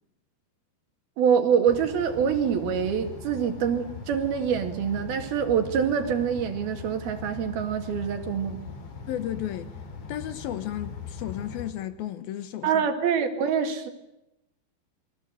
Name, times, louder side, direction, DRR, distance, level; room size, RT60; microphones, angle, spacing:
voice 1, 1.2-8.6 12.6-13.9, right 7 dB, 70° right, 3.8 m, -25 dB
sound 1, 1.7-11.7, left 5 dB, 45° left, 3.4 m, -40 dB
voice 2, 9.1-9.7 10.1-12.8, left 12 dB, 70° left, 2.7 m, -33 dB
29.0 x 22.5 x 7.9 m
omnidirectional pair, 4.7 m